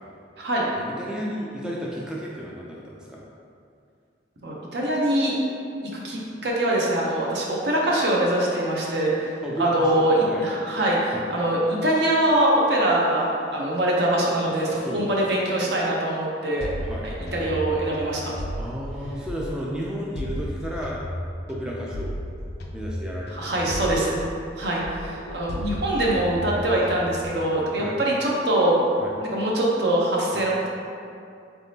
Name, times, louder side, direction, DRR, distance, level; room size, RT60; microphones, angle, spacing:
voice 1, 0.8-3.2 9.4-10.4 11.1-11.2 14.3-14.4 14.7-15.6 16.8-17.1 18.6-21.0 21.5-22.1 22.7-23.6 27.8-28.0 29.0-29.1 30.3-30.5, equal, 5° right, -4 dB, 0.3 m, -33 dB
voice 2, 4.4-5.4 5.9-16.7 17.0-18.4 23.3-24.2 24.6-28.8 29.3-30.7, right 1 dB, 65° right, -3 dB, 0.7 m, -23 dB
sound 1, 16.6-19.7 20.2-24.6 24.8-27.3, equal, 60° left, 0.4 m, -34 dB
4.0 x 3.5 x 2.7 m, 2.5 s
head